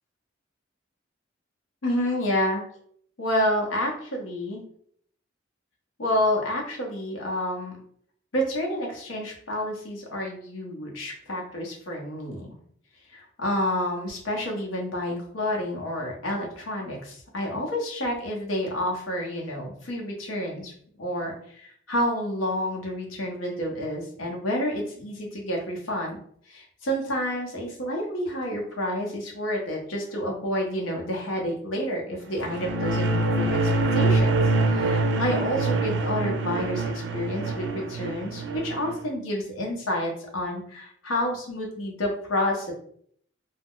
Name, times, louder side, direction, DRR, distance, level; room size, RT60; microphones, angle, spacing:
voice 1, 1.8-2.6 3.2-4.6 6.0-7.8 8.3-12.5 13.1-20.7 21.0-34.3 34.6-42.7, left 1 dB, 90° left, 0 dB, 0.8 m, -29 dB
sound 1, 32.3-39.0, right 2 dB, 65° right, 0.4 m, -25 dB
2.4 x 2.1 x 3.6 m, 0.63 s
head